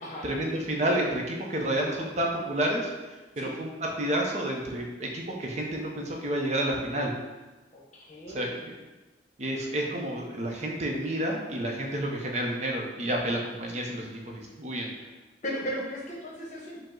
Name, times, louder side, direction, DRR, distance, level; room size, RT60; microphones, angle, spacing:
voice 1, 0.2-2.8 3.4-7.1 8.3-8.7 9.4-14.9, right 1 dB, 40° right, -1 dB, 0.5 m, -30 dB
voice 2, 7.7-8.5 15.0-15.1 15.4-16.8, equal, 45° left, -3 dB, 0.8 m, -36 dB
4.9 x 2.0 x 3.7 m, 1.2 s
head